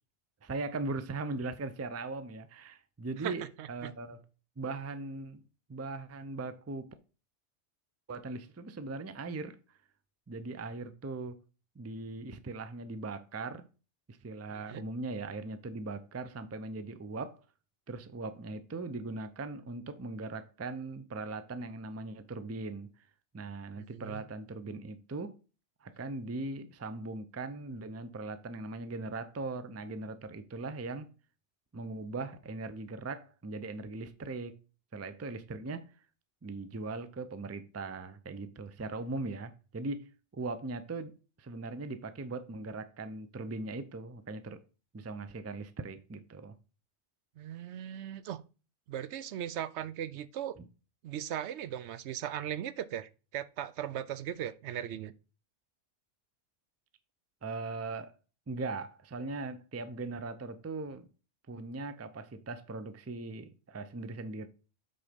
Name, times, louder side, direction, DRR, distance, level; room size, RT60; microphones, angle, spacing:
voice 1, 0.4-4.2 4.6-5.4 5.7-6.9 8.1-9.8 10.3-11.4 11.8-13.7 14.1-17.4 17.9-22.9 23.3-25.4 25.8-31.1 31.7-34.6 34.9-35.8 36.4-44.6 44.9-46.5 57.4-58.1 58.5-61.1 61.5-64.5, right 3 dB, 20° right, 0.4 m, -39 dB
voice 2, 3.2-3.9 14.7-14.8 23.8-24.2 47.4-48.4 48.9-50.6 51.0-55.1, right 10 dB, 75° right, 0.8 m, -38 dB
7.8 x 3.9 x 5.2 m
omnidirectional pair, 1.2 m